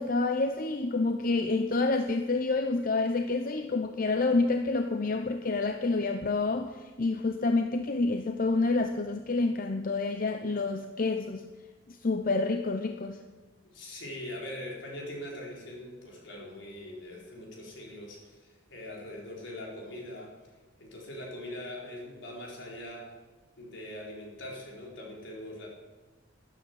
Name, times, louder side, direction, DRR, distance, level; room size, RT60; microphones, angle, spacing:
voice 1, 0.0-11.5 11.9-13.2, left 3 dB, 50° left, 7 dB, 0.7 m, -28 dB
voice 2, 13.6-20.3 20.8-23.1 23.6-25.7, left 1 dB, 75° left, -2 dB, 4.5 m, -42 dB
13.0 x 11.0 x 8.1 m, 1.2 s
head